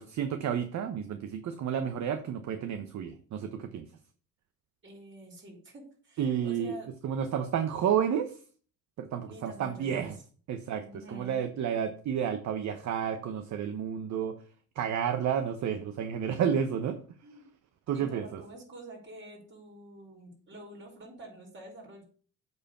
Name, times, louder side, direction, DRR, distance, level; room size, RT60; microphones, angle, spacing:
voice 1, 0.0-3.9 6.2-6.8 7.0-8.4 9.0-10.2 10.5-14.4 14.7-17.0 17.9-18.4, right 8 dB, 55° right, 9 dB, 1.1 m, -31 dB
voice 2, 4.8-6.9 9.3-10.1 10.8-11.5 16.4-16.5 17.2-17.5 17.9-22.0, right 1 dB, 35° right, -1 dB, 5.4 m, -48 dB
8.6 x 4.6 x 6.8 m, 0.43 s
supercardioid pair, 85°, 34 cm